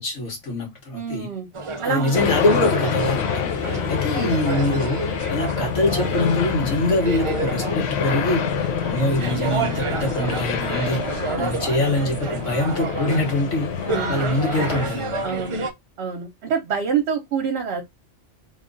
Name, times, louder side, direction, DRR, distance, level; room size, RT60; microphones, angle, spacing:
voice 1, 0.0-1.3 1.8-5.0 5.3-8.4 8.8-11.0 11.4-15.2, left 1 dB, 90° left, 1.5 m, -24 dB
voice 2, 0.9-1.5 1.8-2.2 3.6-4.0 11.3-11.6 13.9-14.3 15.2-15.6 16.0-17.8, right 6 dB, 65° right, 1.0 m, -27 dB
sound 1, 1.5-15.7, right 3 dB, 45° right, 0.4 m, -30 dB
sound 2, 2.1-14.9, left 7 dB, 70° left, 0.8 m, -27 dB
3.0 x 2.3 x 3.7 m
omnidirectional pair, 1.2 m